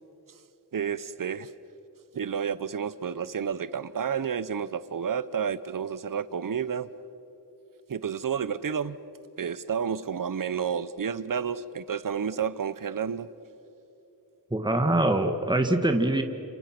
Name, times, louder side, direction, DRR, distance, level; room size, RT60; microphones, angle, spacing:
voice 1, 0.7-1.5 2.1-6.9 7.9-9.0 9.4-13.3, right 7 dB, 55° right, 15 dB, 0.9 m, -30 dB
voice 2, 14.5-16.2, right 1 dB, 10° right, 5 dB, 1.8 m, -23 dB
30.0 x 28.0 x 6.0 m, 2.8 s
wide cardioid pair, 80°, 38 cm